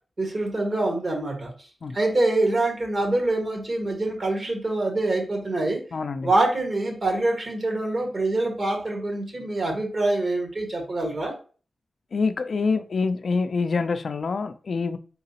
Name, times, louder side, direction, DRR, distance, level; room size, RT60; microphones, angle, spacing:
voice 1, 0.2-1.5 1.9-5.8 6.2-11.3, right 2 dB, 55° right, 1 dB, 1.7 m, -25 dB
voice 2, 5.9-6.3 12.1-15.0, left 4 dB, 70° left, 11 dB, 0.4 m, -26 dB
3.8 x 3.7 x 2.9 m, 0.39 s
cardioid pair, 50°, 0 cm